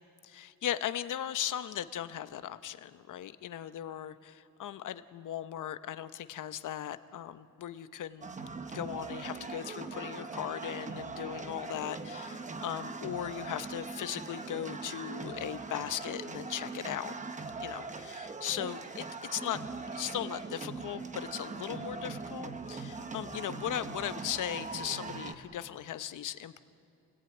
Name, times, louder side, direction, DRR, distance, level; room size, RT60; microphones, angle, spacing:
voice 1, 0.2-8.3 8.7-17.1 17.6-19.1 19.3-19.6 19.9-26.6, left 11 dB, 60° left, 12 dB, 0.8 m, -38 dB
sound 1, 8.2-25.3, right 4 dB, 20° right, 0.9 m, -41 dB
27.0 x 18.5 x 8.9 m, 2.6 s
wide cardioid pair, 170°, 35 cm